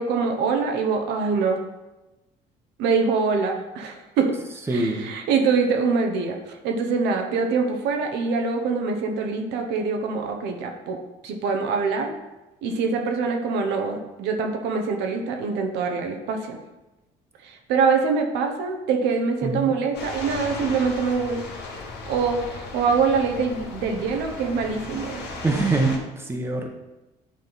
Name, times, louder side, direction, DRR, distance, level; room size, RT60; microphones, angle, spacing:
voice 1, 0.0-1.6 2.8-4.3 4.7-11.0 11.2-12.1 12.6-16.6 17.4-21.4 22.1-25.6, right 5 dB, 85° right, 3 dB, 1.0 m, -24 dB
voice 2, 4.7-5.1 19.4-19.7 25.4-26.7, right 2 dB, 15° right, 2 dB, 1.0 m, -24 dB
sound 1, 19.9-26.0, left 3 dB, 80° left, 1.7 m, -36 dB
9.4 x 3.7 x 4.0 m, 1.0 s
cardioid pair, 110°, 17 cm